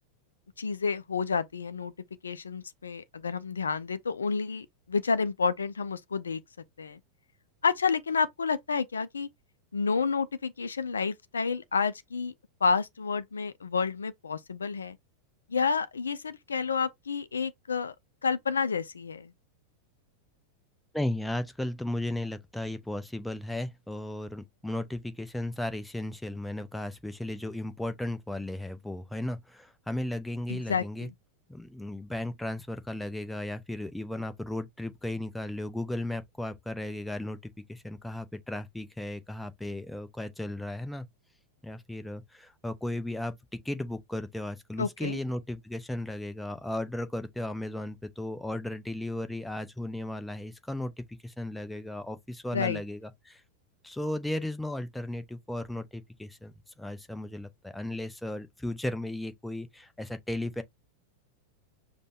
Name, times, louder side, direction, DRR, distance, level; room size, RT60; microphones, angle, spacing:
voice 1, 0.6-1.9 2.2-6.4 6.8-7.0 7.6-9.3 9.7-12.3 12.6-15.0 15.5-17.9 18.2-19.3 30.5-31.1 44.8-45.2 52.5-52.8, left 5 dB, 70° left, 0.3 m, -30 dB
voice 2, 20.9-31.1 31.5-41.1 41.6-53.4 53.8-56.5 56.8-60.6, left 1 dB, 5° left, 0.6 m, -35 dB
5.2 x 2.1 x 4.1 m
figure-of-eight pair, 90°, 0 cm